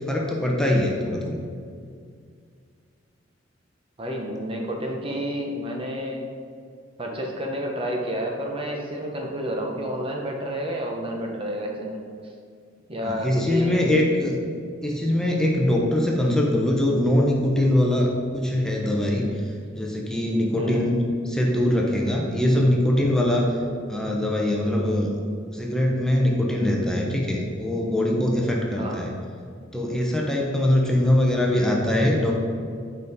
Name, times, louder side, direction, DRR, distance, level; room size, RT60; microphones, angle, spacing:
voice 1, 0.1-1.4 12.9-14.4 14.8-19.3 19.7-21.0 21.3-23.6 23.9-25.1 25.5-29.1 29.7-32.3, left 1 dB, 5° left, -2 dB, 0.8 m, -22 dB
voice 2, 4.0-6.3 7.0-12.0 12.9-13.9 20.6-20.8 28.8-29.0, equal, 30° right, 0 dB, 0.8 m, -29 dB
8.2 x 5.2 x 4.0 m, 2.2 s
head